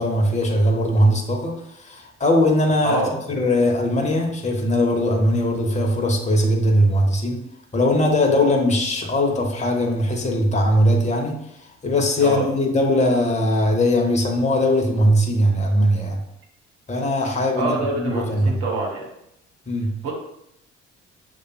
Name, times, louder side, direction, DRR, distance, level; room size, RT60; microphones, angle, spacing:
voice 1, 0.0-3.0 3.3-7.4 7.7-11.4 11.8-16.2 16.9-18.6 19.7-19.9, left 1 dB, 20° left, 1 dB, 0.9 m, -20 dB
voice 2, 17.6-19.1 20.0-20.1, right 3 dB, 65° right, -1 dB, 1.1 m, -25 dB
6.5 x 2.4 x 2.3 m, 0.79 s
figure-of-eight pair, 50°, 35 cm